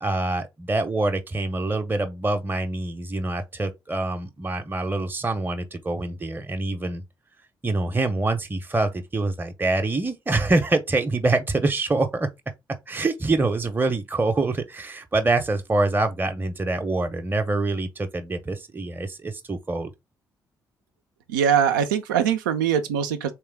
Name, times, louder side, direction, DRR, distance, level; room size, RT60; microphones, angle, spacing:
voice 1, 0.0-7.0 7.6-12.3 12.9-19.9, right 2 dB, 20° right, 0.7 m, -25 dB
voice 2, 21.3-23.3, right 8 dB, 80° right, 0.4 m, -22 dB
3.4 x 3.0 x 3.4 m
hypercardioid pair, 40°, 10 cm